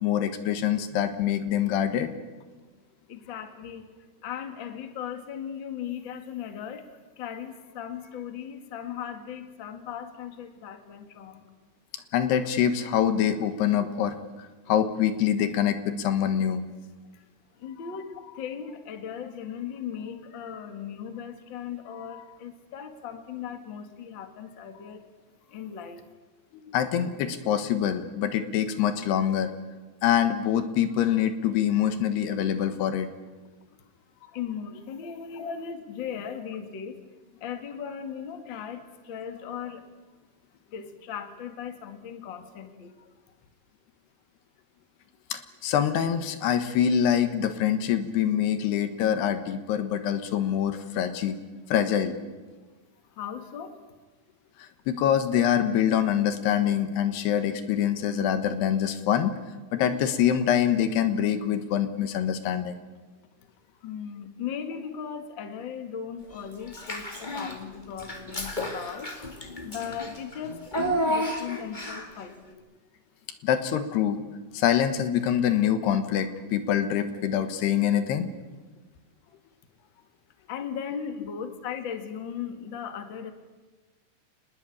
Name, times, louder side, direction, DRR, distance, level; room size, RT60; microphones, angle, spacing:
voice 1, 0.0-2.1 12.1-16.6 26.5-29.5 30.0-33.1 35.4-35.5 45.3-51.4 51.7-52.2 54.6-59.4 59.7-62.8 73.4-74.2 74.5-78.3, left 9 dB, 85° left, 10 dB, 3.5 m, -25 dB
voice 2, 3.1-3.9 4.2-6.9 7.2-11.4 17.1-17.2 17.6-25.1 25.5-26.1 34.2-37.0 37.4-39.8 40.7-43.1 53.1-53.7 63.8-72.6 80.5-83.3, left 8 dB, 40° left, 7 dB, 1.9 m, -37 dB
Child speech kid speaking / Bathtub (filling or washing), 66.7-67.6 68.0-72.2, equal, 20° left, 1.4 m, -31 dB
26.5 x 20.0 x 8.7 m, 1.3 s
omnidirectional pair, 4.6 m